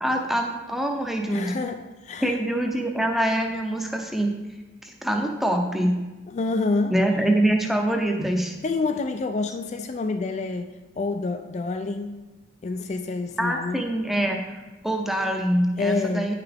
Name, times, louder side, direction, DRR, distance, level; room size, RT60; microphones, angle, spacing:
voice 1, 0.0-1.5 2.2-4.3 4.8-5.9 6.9-8.5 13.4-14.4 14.8-16.3, right 1 dB, ahead, 2 dB, 0.6 m, -24 dB
voice 2, 1.3-2.4 6.3-6.9 8.6-10.7 11.0-12.1 12.6-13.8 15.8-16.3, left 3 dB, 35° left, 8 dB, 0.3 m, -27 dB
9.3 x 5.8 x 3.4 m, 1.1 s
head